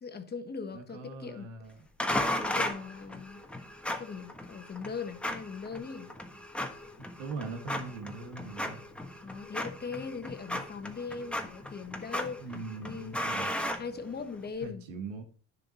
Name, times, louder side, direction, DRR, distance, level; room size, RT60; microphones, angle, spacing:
voice 1, 0.0-1.5 2.3-3.4 3.8-6.1 9.2-12.5 12.8-13.2 13.7-14.8, left 5 dB, 25° left, 1.2 m, -40 dB
voice 2, 0.7-1.8 7.0-8.8 12.4-13.5 14.6-15.2, right 3 dB, 85° right, 2.2 m, -41 dB
sound 1, 2.0-14.5, left 1 dB, 5° left, 1.3 m, -36 dB
10.0 x 6.7 x 4.3 m
supercardioid pair, 90°, 36 cm